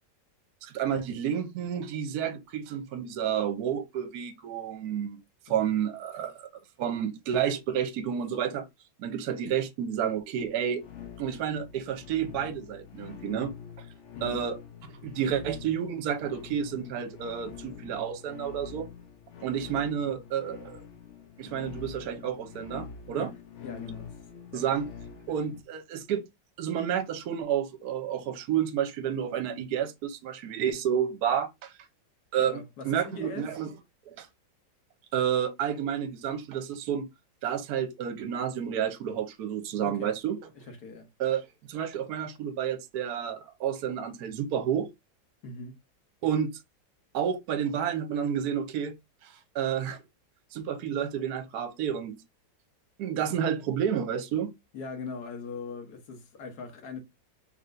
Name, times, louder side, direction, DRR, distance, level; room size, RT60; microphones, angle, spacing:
voice 1, 0.6-5.2 5.5-6.5 6.8-8.7 9.0-10.8 11.2-13.5 14.2-14.6 14.9-18.9 19.4-20.8 21.4-23.3 24.5-24.9 25.3-26.2 26.6-31.7 32.3-32.6 32.8-33.7 34.1-34.3 35.1-37.1 37.4-40.4 41.2-44.9 46.2-46.5 47.1-48.9 49.2-50.0 50.5-52.2 53.0-54.5, right 8 dB, 65° right, 1.1 m, -30 dB
sound 1, 10.8-25.6, left 8 dB, 80° left, 0.6 m, -45 dB
voice 2, 23.6-24.1 24.5-24.6 32.4-33.5 39.8-40.1 40.7-41.1 45.4-45.7 54.7-57.0, left 4 dB, 60° left, 1.4 m, -40 dB
4.1 x 3.3 x 2.5 m
omnidirectional pair, 2.0 m